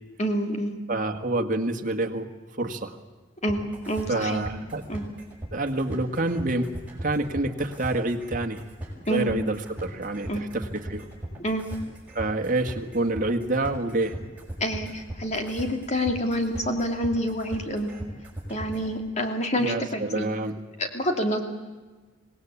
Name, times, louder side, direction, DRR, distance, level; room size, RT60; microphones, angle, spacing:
voice 1, 0.2-0.8 3.4-4.4 4.9-5.0 9.1-9.3 10.3-10.4 11.4-11.6 14.6-17.9 18.5-20.3 20.8-21.4, equal, 35° left, 4 dB, 2.6 m, -27 dB
voice 2, 0.9-2.3 2.6-3.0 4.1-4.8 5.5-6.7 7.0-8.6 9.1-11.1 12.2-14.2 19.6-20.5, right 2 dB, 40° right, 5 dB, 1.8 m, -27 dB
sound 1, 3.5-18.9, right 1 dB, 10° right, 6.3 m, -38 dB
25.5 x 19.0 x 8.4 m, 1.3 s
head